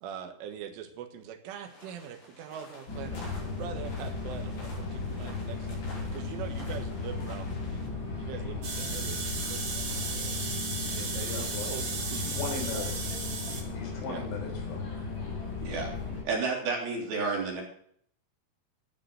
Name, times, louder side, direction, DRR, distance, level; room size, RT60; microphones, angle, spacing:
voice 1, 0.0-9.9 10.9-12.7 14.0-14.3, right 9 dB, 90° right, 7 dB, 4.0 m, -43 dB
sound 1, 1.6-7.9, left 1 dB, 55° left, 6.8 m, -50 dB
sound 2, 2.9-16.2, left 4 dB, 25° left, 4.8 m, -36 dB
sound 3, 8.6-13.6, right 4 dB, 40° right, 2.9 m, -35 dB
voice 2, 11.2-12.0 12.3-13.1 13.7-15.0, left 4 dB, 85° left, 1 dB, 6.4 m, -38 dB
voice 3, 16.2-17.6, right 4 dB, 55° right, 0 dB, 5.0 m, -30 dB
13.0 x 9.2 x 6.4 m, 0.63 s
omnidirectional pair, 5.5 m